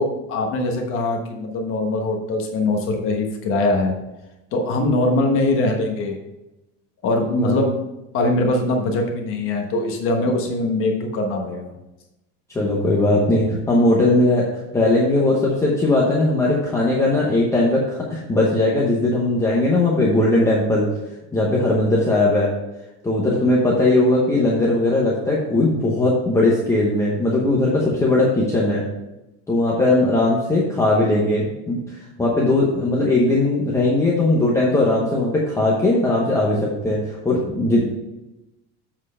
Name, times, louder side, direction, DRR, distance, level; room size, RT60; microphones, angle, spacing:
voice 1, 0.0-3.9 4.5-6.1 7.0-7.7 8.1-11.7, left 2 dB, 40° left, 2 dB, 1.2 m, -22 dB
voice 2, 12.5-14.4 14.7-20.9 21.3-22.5 23.0-28.8 29.5-31.8 32.2-37.9, left 2 dB, 10° left, -4 dB, 0.9 m, -19 dB
7.6 x 4.5 x 5.5 m, 0.96 s
cardioid pair, 175°, 32 cm